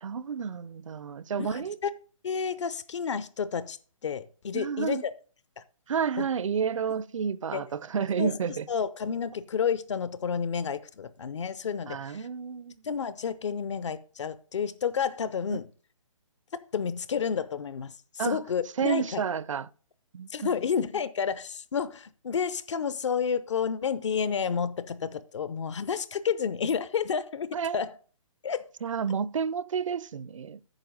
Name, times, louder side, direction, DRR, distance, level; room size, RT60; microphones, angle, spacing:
voice 1, 0.0-1.8 4.5-5.0 5.9-8.7 11.9-12.8 15.5-15.6 18.2-18.4 18.8-19.7 20.1-20.5 27.5-27.8 28.8-30.6, right 6 dB, 70° right, 0.5 m, -30 dB
voice 2, 1.4-1.9 2.2-5.1 5.6-5.7 6.2-6.3 7.5-7.6 8.2-8.4 8.7-12.3 12.8-15.7 16.7-19.2 20.3-28.0 28.4-28.6, left 6 dB, 60° left, 0.6 m, -30 dB
9.1 x 5.7 x 5.2 m
hypercardioid pair, 165°, 17 cm